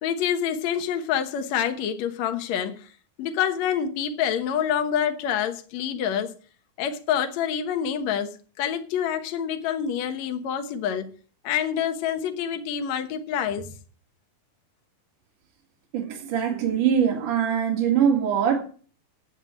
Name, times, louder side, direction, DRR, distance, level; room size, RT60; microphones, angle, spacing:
voice 1, 0.0-2.9 3.2-6.3 6.8-11.1 11.4-13.7, left 8 dB, 60° left, 2.1 m, -27 dB
voice 2, 15.9-18.6, right 8 dB, 65° right, 3.4 m, -22 dB
9.0 x 8.2 x 8.3 m
omnidirectional pair, 4.1 m